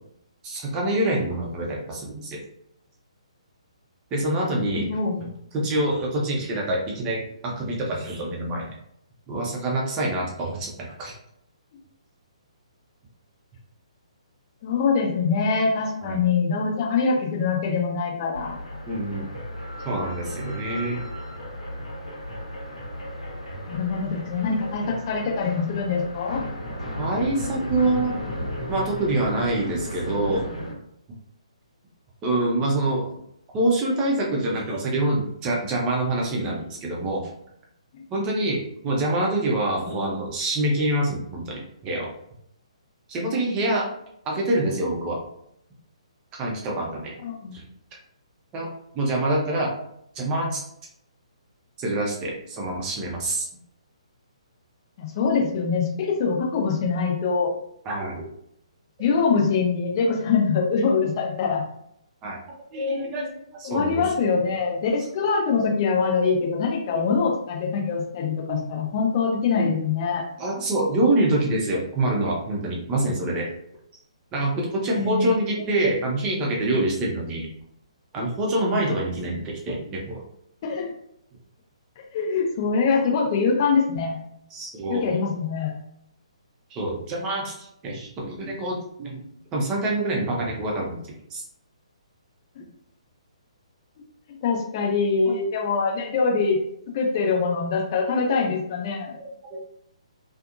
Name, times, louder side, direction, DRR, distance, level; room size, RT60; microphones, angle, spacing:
voice 1, 0.4-2.4 4.1-4.9 5.5-8.7 9.3-11.1 16.0-16.2 18.9-19.3 19.8-21.1 23.5-23.6 27.0-28.2 28.7-30.5 32.2-33.1 33.5-37.2 38.1-42.1 43.1-43.8 44.2-45.2 46.4-47.1 47.5-47.6 48.5-48.7 48.9-49.7 50.1-50.6 51.8-53.5 57.8-58.3 62.2-62.4 62.7-64.1 66.9-67.0 68.5-68.6 69.5-69.7 70.4-73.5 74.3-77.5 78.1-80.2 84.5-85.0 86.7-89.2 89.5-91.0 91.3-91.4 95.3-95.4 99.2-99.6, right 1 dB, 20° right, -2 dB, 0.7 m, -26 dB
voice 2, 4.5-5.2 14.6-18.6 23.7-26.4 37.9-38.0 47.2-47.5 55.0-57.5 59.0-61.6 63.6-70.2 74.9-75.3 80.6-80.9 82.1-84.2 84.9-85.7 94.3-96.6 96.9-99.1, left 5 dB, 35° left, 0 dB, 0.7 m, -24 dB
sound 1, 18.3-30.7, left 1 dB, 80° left, 1.1 m, -34 dB
2.7 x 2.4 x 2.4 m, 0.74 s
figure-of-eight pair, 130°, 4 cm